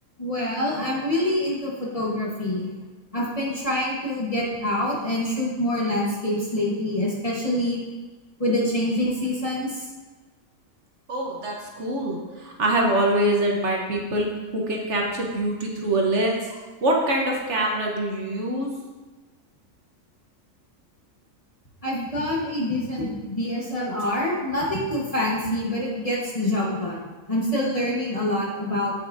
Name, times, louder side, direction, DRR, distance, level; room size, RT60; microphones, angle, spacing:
voice 1, 0.2-2.7 3.1-7.8 8.4-9.9 21.8-28.9, left 1 dB, 25° left, -4 dB, 1.2 m, -26 dB
voice 2, 11.1-16.4 16.8-18.7, right 1 dB, 55° right, -1 dB, 1.3 m, -24 dB
8.4 x 7.7 x 2.6 m, 1.2 s
omnidirectional pair, 1.5 m